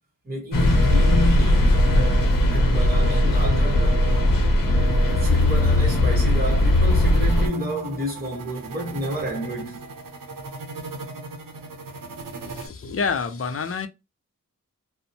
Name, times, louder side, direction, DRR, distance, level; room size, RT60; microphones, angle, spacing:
voice 1, 0.2-2.0 2.5-4.2 5.2-9.9, right 1 dB, 30° right, 1.0 m, -30 dB
sound 1, 0.5-7.5, left 1 dB, 80° left, 0.7 m, -18 dB
sound 2, 0.7-1.2 1.7-2.2 2.7-3.2 3.7-4.2 4.7-5.2, right 3 dB, 15° left, 0.9 m, -34 dB
sound 3, 4.8-12.7, right 4 dB, 85° right, 0.6 m, -39 dB
voice 2, 12.4-13.9, left 5 dB, 45° left, 0.4 m, -28 dB
2.5 x 2.0 x 2.6 m
wide cardioid pair, 95°, 33 cm